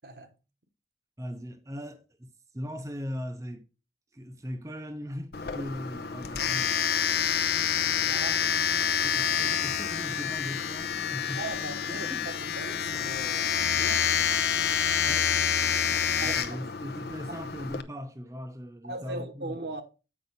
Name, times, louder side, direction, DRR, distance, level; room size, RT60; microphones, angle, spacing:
voice 1, 1.2-3.7 4.1-6.8 9.0-11.4 11.8-12.4 14.7-15.3 15.9-19.6, equal, 15° right, 0.6 m, -39 dB
Domestic sounds home sounds, 5.3-17.8, left 8 dB, 60° left, 0.6 m, -28 dB
voice 2, 7.8-8.4 11.4-14.1 16.2-16.7 18.8-19.8, right 2 dB, 65° right, 1.2 m, -39 dB
8.0 x 5.4 x 4.0 m
head